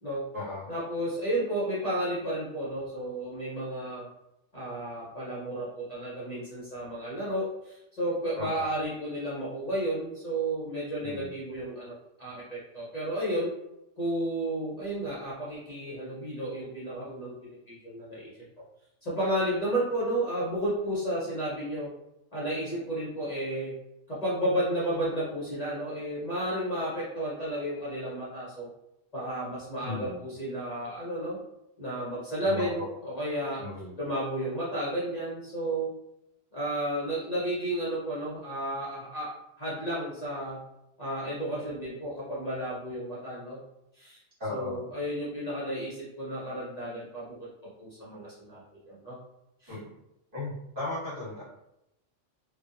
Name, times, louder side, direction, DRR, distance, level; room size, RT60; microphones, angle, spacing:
voice 1, 0.7-4.1 4.5-13.5 14.0-17.4 17.7-18.3 19.0-21.9 22.3-23.7 24.1-28.7 29.1-31.4 31.8-33.6 34.0-35.9 36.5-40.6 41.0-43.6 43.9-44.2 44.5-47.5 47.8-49.2 49.6-49.8, right 1 dB, 45° left, -8 dB, 0.6 m, -32 dB
voice 2, 8.3-8.7 11.0-11.3 29.8-30.2 32.4-32.9 33.6-33.9 44.4-44.8 49.7-49.9 50.3-51.4, left 2 dB, 45° right, -9 dB, 1.5 m, -36 dB
2.6 x 2.2 x 2.4 m, 0.85 s
omnidirectional pair, 1.3 m